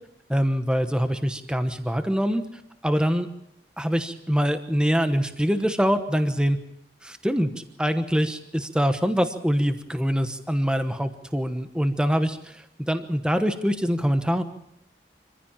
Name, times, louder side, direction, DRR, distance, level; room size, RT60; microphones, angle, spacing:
voice 1, 0.3-2.4 2.8-3.3 3.8-6.6 7.0-14.4, equal, 5° right, 8 dB, 1.1 m, -24 dB
25.5 x 15.0 x 7.3 m, 0.80 s
head